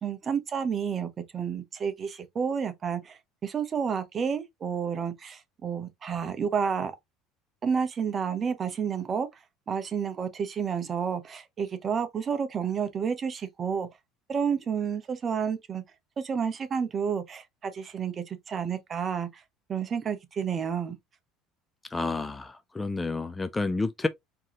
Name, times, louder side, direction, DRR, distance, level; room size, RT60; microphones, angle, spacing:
voice 1, 0.0-6.9 7.6-9.3 9.7-13.9 14.3-15.8 16.2-19.3 19.7-21.0, right 7 dB, 35° right, 0.9 m, -30 dB
voice 2, 21.9-24.1, left 3 dB, 15° left, 0.4 m, -30 dB
4.5 x 2.9 x 2.9 m
supercardioid pair, 110°, 0 cm